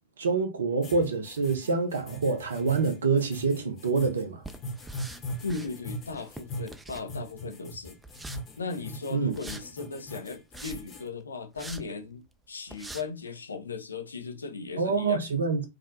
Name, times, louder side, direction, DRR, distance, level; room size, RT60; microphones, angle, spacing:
voice 1, 0.2-4.4 9.1-9.3 14.8-15.7, right 4 dB, 75° right, 0.5 m, -26 dB
sound 1, 0.8-11.1, equal, 30° left, 0.8 m, -40 dB
sound 2, 4.4-5.7 6.1-7.4 8.0-8.4 9.3-9.6 10.3-11.0 11.6-11.8 12.3-12.4 12.7-13.0, right 2 dB, 10° right, 0.3 m, -43 dB
voice 2, 5.4-8.0 8.6-15.3, left 4 dB, 80° left, 0.5 m, -37 dB
2.4 x 2.1 x 2.5 m
figure-of-eight pair, 90°, 0 cm